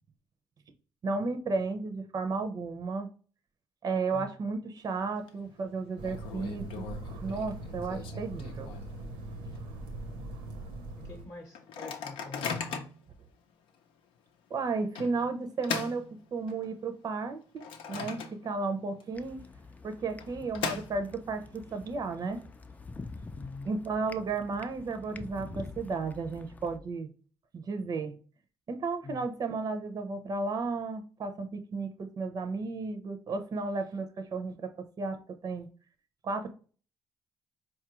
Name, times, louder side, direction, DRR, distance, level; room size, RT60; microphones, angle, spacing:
voice 1, 1.0-3.1 3.8-6.9 7.2-8.7 14.5-16.1 16.3-19.4 19.8-22.4 23.6-27.1 27.5-28.1 28.7-34.7 35.0-35.2 35.4-35.7 36.2-36.5, right 4 dB, 45° right, 0.6 m, -33 dB
Microwave oven, 4.8-5.3 5.6-5.7 6.0-9.1 9.5-9.6 9.9-10.2 10.7-10.8 11.5-13.1 13.7-13.8 15.0-16.8 17.2-18.7 19.0-19.1 20.0-21.4, left 6 dB, 80° left, 0.6 m, -39 dB
sound 1, 6.0-11.3, right 2 dB, 80° right, 0.8 m, -41 dB
voice 2, 11.0-12.9 23.4-23.7 29.0-29.3, left 3 dB, 35° left, 0.8 m, -45 dB
sound 2, 19.1-26.8, left 3 dB, 20° left, 0.4 m, -46 dB
4.3 x 2.4 x 2.9 m
supercardioid pair, 75°, 9 cm